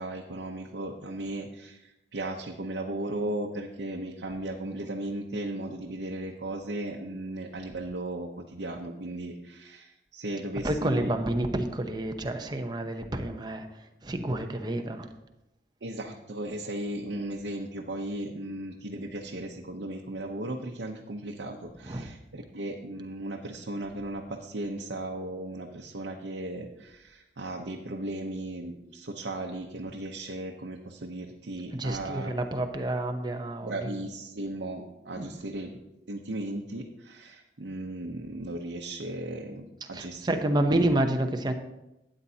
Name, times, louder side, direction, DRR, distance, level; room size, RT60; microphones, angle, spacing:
voice 1, 0.0-11.1 15.8-32.3 33.6-35.7 36.1-40.3 40.7-40.8, right 1 dB, 90° right, 0 dB, 0.8 m, -36 dB
voice 2, 10.6-13.7 14.0-15.1 21.8-22.1 31.7-33.9 35.2-35.4 39.9-41.5, right 1 dB, 25° right, 5 dB, 0.7 m, -29 dB
12.5 x 8.9 x 2.8 m, 0.93 s
head